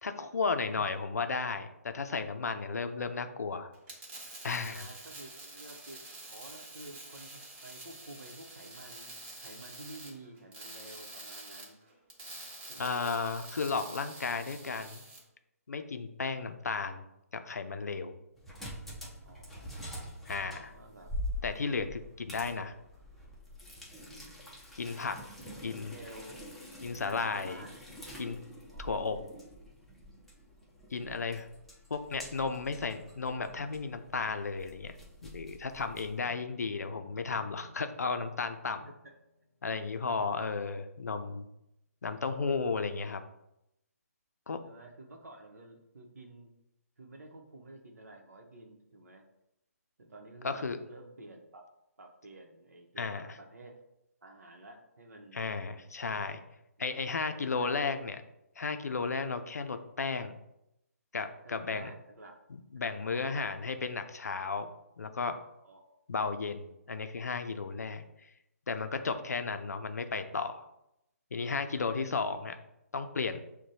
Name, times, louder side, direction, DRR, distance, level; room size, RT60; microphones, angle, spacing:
voice 1, 0.0-3.7 4.4-4.9 12.8-15.0 15.7-17.0 17.3-18.2 20.3-20.7 21.4-22.7 24.8-25.2 25.6-26.0 26.8-27.6 28.2-28.4 28.8-29.2 30.9-31.5 31.9-35.0 35.2-38.9 39.6-41.5 42.0-43.2 44.5-44.6 50.4-50.8 53.0-53.4 55.3-56.4 56.8-58.2 58.6-60.3 61.1-61.9 62.5-64.7 65.0-65.4 66.1-68.0 68.7-70.7 71.3-72.6 72.9-73.4, left 4 dB, 80° left, 8 dB, 0.5 m, -34 dB
voice 2, 2.6-3.1 4.6-11.8 12.7-13.0 19.2-19.7 20.5-21.1 24.0-24.5 25.7-26.4 27.0-27.7 28.7-29.1 31.0-31.3 35.9-36.2 39.0-39.1 40.1-40.8 44.6-46.5 47.0-49.2 50.0-51.6 52.0-53.7 54.2-55.5 56.8-56.9 57.2-58.0 61.4-62.3 63.0-63.5 65.6-65.8 71.7-72.3, right 2 dB, 75° right, 3 dB, 0.9 m, -51 dB
sound 1, 3.7-15.2, right 2 dB, 40° right, 1.3 m, -47 dB
sound 2, 18.4-36.2, left 1 dB, ahead, 0.5 m, -45 dB
sound 3, 36.2-40.6, left 1 dB, 35° left, 0.8 m, -58 dB
6.1 x 2.2 x 2.7 m, 0.84 s
figure-of-eight pair, 145°, 9 cm